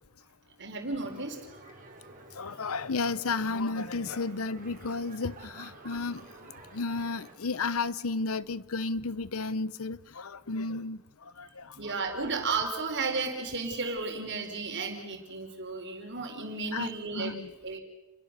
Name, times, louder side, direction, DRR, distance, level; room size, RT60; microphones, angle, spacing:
voice 1, 0.6-1.4 11.7-17.4 17.6-17.8, right 4 dB, 55° right, 4.6 m, -33 dB
sound 1, 0.9-7.4, right 2 dB, 40° right, 4.4 m, -51 dB
voice 2, 2.3-6.2 6.7-12.0 16.7-17.5, left 3 dB, 75° left, 0.9 m, -33 dB
29.5 x 21.0 x 6.8 m
head